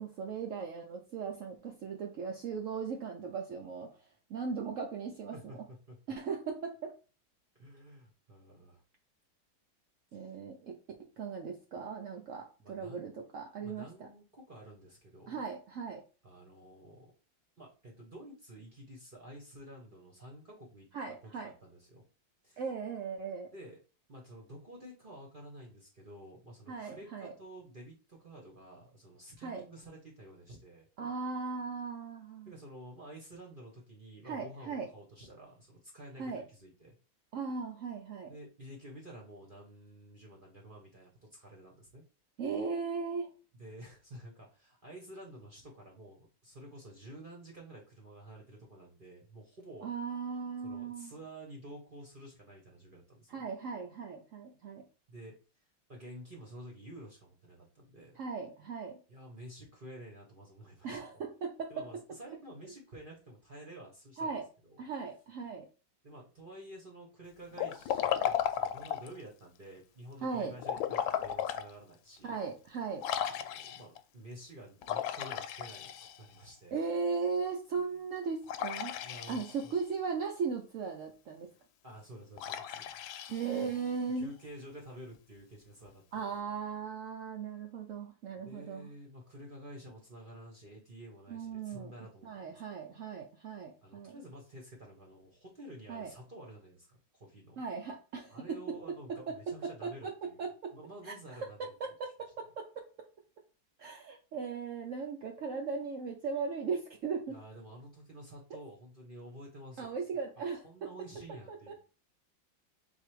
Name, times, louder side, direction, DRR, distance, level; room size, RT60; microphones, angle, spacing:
voice 1, 0.0-3.9 4.3-5.3 6.1-6.9 10.1-10.8 11.2-14.1 15.3-16.0 20.9-21.5 22.6-23.5 26.7-27.3 29.4-29.6 31.0-32.5 34.2-34.9 36.2-36.4 37.3-38.3 42.4-43.3 49.8-51.1 53.3-54.8 58.2-59.0 60.8-61.9 64.2-64.5 64.8-65.7 70.2-70.5 72.2-73.1 76.7-78.9 79.3-81.5 83.3-84.3 86.1-88.9 91.3-91.9 92.2-94.2 95.9-96.1 97.6-98.6 99.3-100.7 101.0-101.1 101.6-102.8 103.8-107.4 109.8-110.9 111.5-111.7, right 5 dB, 85° right, 2 dB, 0.6 m, -38 dB
voice 2, 5.3-6.0 7.6-8.8 10.1-10.4 12.6-13.2 13.6-15.4 16.2-17.1 17.6-20.9 21.2-22.0 22.4-22.6 23.5-23.8 24.1-30.9 32.5-36.9 38.3-42.0 43.6-49.9 50.6-53.4 55.1-55.3 55.9-58.2 59.1-61.0 61.7-64.8 66.0-72.4 73.2-76.7 79.0-79.7 81.8-82.9 83.7-83.8 84.1-86.3 88.4-93.0 93.8-97.6 98.3-100.4 100.7-101.7 107.3-109.9 110.6-111.7, right 1 dB, 40° right, -1 dB, 0.8 m, -50 dB
Liquid, 67.5-69.2 70.6-71.7 72.2-72.3 73.0-74.0 74.8-76.4 78.5-79.8 82.4-84.0, left 10 dB, 85° left, 1.3 m, -35 dB
3.9 x 2.7 x 4.6 m, 0.34 s
omnidirectional pair, 2.1 m